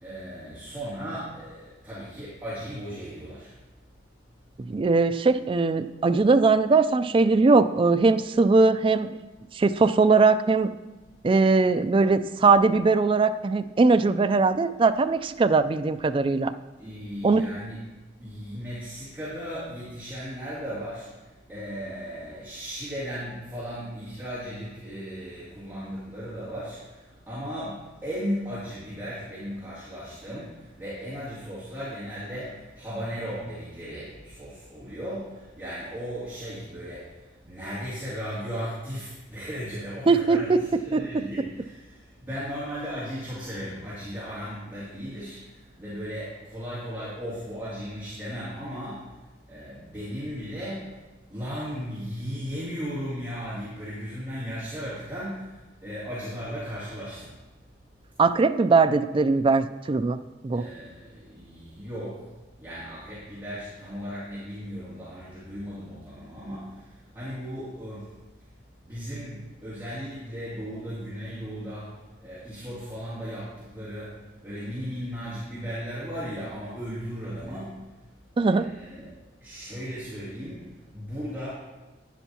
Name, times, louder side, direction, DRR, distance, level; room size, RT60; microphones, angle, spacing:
voice 1, 0.0-3.6 16.8-17.8 18.2-57.4 60.5-68.2 68.8-78.1 78.4-79.1 79.4-81.5, equal, 10° right, -12 dB, 2.7 m, -36 dB
voice 2, 4.7-9.2 9.5-10.7 11.2-16.5 17.2-17.5 40.1-40.6 40.9-41.0 58.2-60.2 60.4-60.6 78.4-78.7, right 3 dB, 30° right, 11 dB, 0.3 m, -20 dB
11.5 x 10.0 x 2.9 m, 1.1 s
head